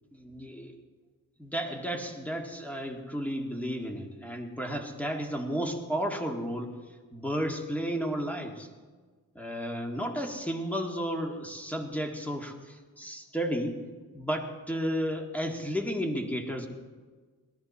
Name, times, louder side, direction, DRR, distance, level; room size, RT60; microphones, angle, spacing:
voice 1, 0.1-0.7 1.4-6.7 7.1-8.7 9.4-13.8 14.1-16.7, equal, 5° left, 2 dB, 1.9 m, -33 dB
19.0 x 13.0 x 4.2 m, 1.4 s
cardioid pair, 95°, 34 cm